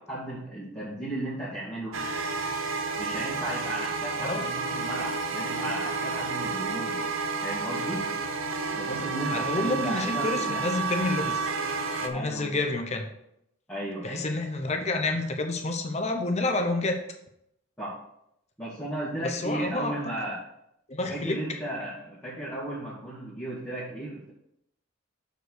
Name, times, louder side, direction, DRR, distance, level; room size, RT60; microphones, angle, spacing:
voice 1, 0.1-2.0 3.0-7.0 7.4-8.1 8.7-10.7 12.1-12.6 13.7-14.3 17.8-18.0 18.6-20.4 21.1-24.3, right 1 dB, 5° left, -11 dB, 2.2 m, -35 dB
sound 1, 1.9-12.1, right 4 dB, 85° right, 0.8 m, -31 dB
voice 2, 9.3-11.5 12.0-13.1 14.0-17.0 19.2-19.9 20.9-21.4, left 2 dB, 35° left, 5 dB, 0.8 m, -29 dB
6.6 x 5.0 x 6.2 m, 0.78 s
head